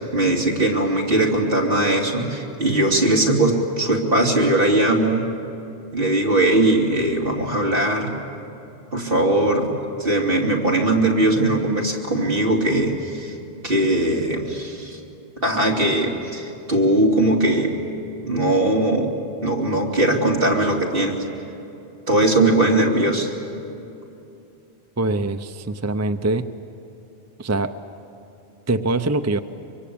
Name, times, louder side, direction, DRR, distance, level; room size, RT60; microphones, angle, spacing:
voice 1, 0.1-5.3 5.9-8.1 8.9-9.7 10.0-13.4 13.6-15.0 15.4-17.7 18.2-19.1 19.4-21.2 22.1-23.3, right 1 dB, 55° right, -1 dB, 3.1 m, -20 dB
voice 2, 25.0-26.4 27.4-27.7 28.7-29.4, right 2 dB, 20° right, 9 dB, 0.5 m, -23 dB
24.5 x 24.0 x 8.6 m, 2.8 s
omnidirectional pair, 1.1 m